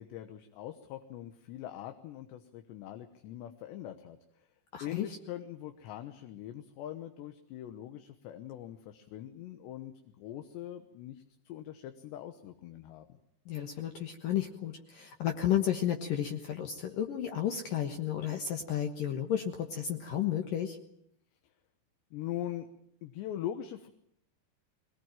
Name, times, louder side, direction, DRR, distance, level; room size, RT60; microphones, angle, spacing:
voice 1, 0.0-4.2 4.8-13.2 22.1-22.7 23.0-23.9, left 12 dB, 80° left, 7 dB, 3.4 m, -42 dB
voice 2, 4.7-5.1 13.5-20.8, left 10 dB, 60° left, 4 dB, 2.7 m, -32 dB
23.0 x 20.0 x 9.1 m, 0.72 s
omnidirectional pair, 5.0 m